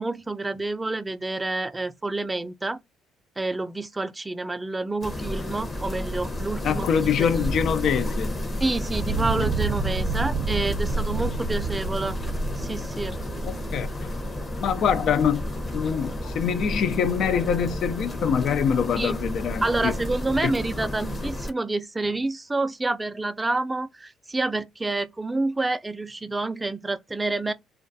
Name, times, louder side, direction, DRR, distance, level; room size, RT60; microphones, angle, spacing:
voice 1, 0.0-2.8 3.4-7.3 8.6-12.2 12.6-13.2 19.0-19.1 19.6-27.5, right 2 dB, 15° right, 0.3 m, -28 dB
sound 1, 5.0-21.5, left 1 dB, 25° left, 0.7 m, -31 dB
voice 2, 6.6-8.3 9.3-9.4 13.4-14.1 14.6-15.5 15.7-19.9 20.4-20.5, left 7 dB, 65° left, 0.3 m, -24 dB
Fire, 8.9-14.0, right 5 dB, 70° right, 0.6 m, -30 dB
2.3 x 2.2 x 2.6 m
supercardioid pair, 80°, 0 cm